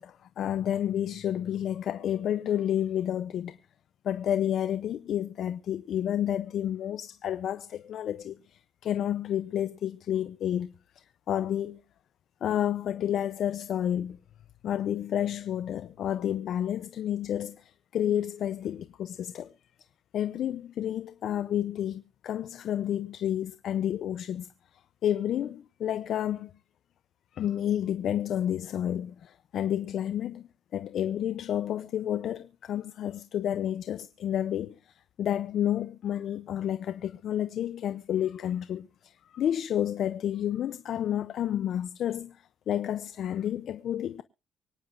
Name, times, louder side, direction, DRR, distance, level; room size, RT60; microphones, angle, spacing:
voice 1, 0.0-3.6 4.0-11.8 12.4-14.2 14.6-19.5 20.1-26.5 27.3-44.2, left 10 dB, 70° left, 0.6 m, -30 dB
24.5 x 10.0 x 2.6 m
cardioid pair, 90°, 0 cm